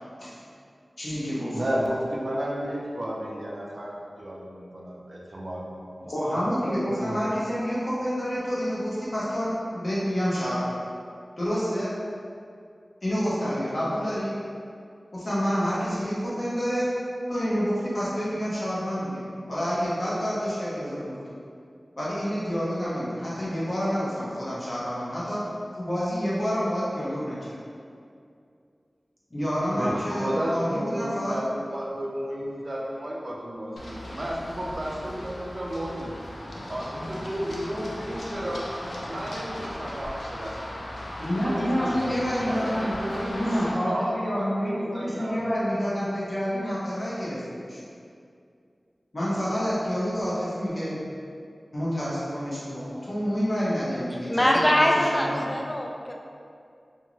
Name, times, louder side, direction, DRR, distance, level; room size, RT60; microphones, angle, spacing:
voice 1, 1.0-1.6 6.0-10.7 11.4-12.0 13.0-14.4 15.1-16.9 17.3-19.2 19.5-21.2 22.0-25.4 25.8-27.6 29.3-31.4 41.2-42.9 43.3-47.8 49.1-50.9 51.7-55.5, equal, 45° left, -9 dB, 0.9 m, -28 dB
voice 2, 1.5-7.2 15.5-16.0 29.8-36.1 36.7-38.7 39.1-40.9 41.4-45.5, equal, 45° right, -4 dB, 0.5 m, -33 dB
Run, 33.8-43.7, left 1 dB, 90° left, 0.4 m, -37 dB
voice 3, 54.3-56.1, left 1 dB, 20° left, 0 dB, 0.3 m, -23 dB
2.7 x 2.5 x 3.0 m, 2.3 s
wide cardioid pair, 70°, 0 cm